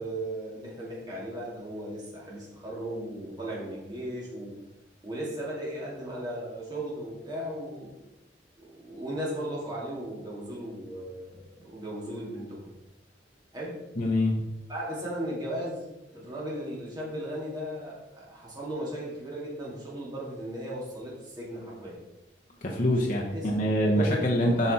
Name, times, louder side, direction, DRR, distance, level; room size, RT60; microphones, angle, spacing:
voice 1, 0.0-4.6 5.0-8.0 8.6-12.7 13.5-13.8 14.7-22.0 23.3-23.6 23.9-24.7, right 1 dB, 20° right, -5 dB, 2.5 m, -36 dB
voice 2, 14.0-14.3 22.6-24.7, left 1 dB, 45° left, -2 dB, 1.1 m, -25 dB
8.3 x 5.5 x 4.3 m, 0.96 s
head